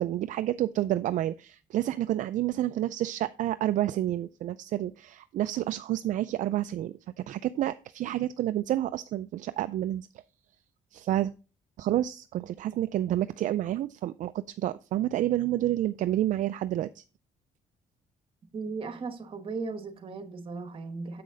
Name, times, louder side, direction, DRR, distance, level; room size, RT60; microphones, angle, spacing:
voice 1, 0.0-10.1 10.9-11.3 11.8-17.0, right 13 dB, 60° right, 0.4 m, -29 dB
voice 2, 18.5-21.2, right 4 dB, 40° right, 1.3 m, -36 dB
7.5 x 6.2 x 3.9 m
cardioid pair, 125°, 15 cm